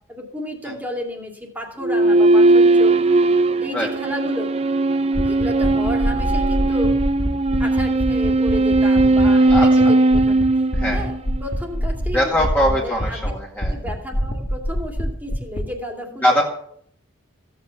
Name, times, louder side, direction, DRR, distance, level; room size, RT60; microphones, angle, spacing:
voice 1, 0.1-2.9 3.6-4.5 5.2-6.9 7.6-10.4 10.9-13.2 13.7-16.3, equal, 10° right, 1 dB, 2.4 m, -32 dB
sound 1, 1.8-11.5, right 2 dB, 30° right, 0.5 m, -18 dB
sound 2, 5.1-9.8 10.1-10.4 10.7-13.3 13.6-15.6, equal, 50° left, 2.1 m, -24 dB
voice 2, 9.5-9.9 10.7-11.0 12.1-13.7 16.2-16.4, equal, 10° left, -3 dB, 2.1 m, -21 dB
16.0 x 8.4 x 6.9 m, 0.63 s
head